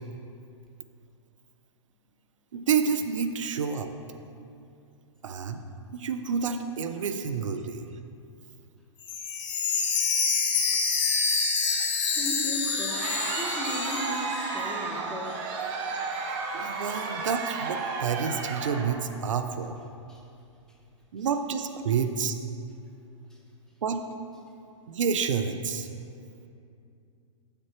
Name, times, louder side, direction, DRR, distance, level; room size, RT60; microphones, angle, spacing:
voice 1, 2.5-3.9 5.2-5.6 5.9-7.9 11.7-12.1 16.5-19.8 21.1-22.3 23.8-24.0 24.9-25.9, right 6 dB, 80° right, 8 dB, 0.5 m, -29 dB
Chime, 9.0-15.0 15.3-15.4 15.9-16.0, left 5 dB, 60° left, 1.3 m, -27 dB
voice 2, 12.1-15.4 20.1-20.2, equal, 5° left, -3 dB, 1.0 m, -36 dB
Crowd, 12.5-19.0, right 4 dB, 45° right, 0.8 m, -33 dB
7.7 x 6.6 x 3.0 m, 2.5 s
hypercardioid pair, 115°, 16 cm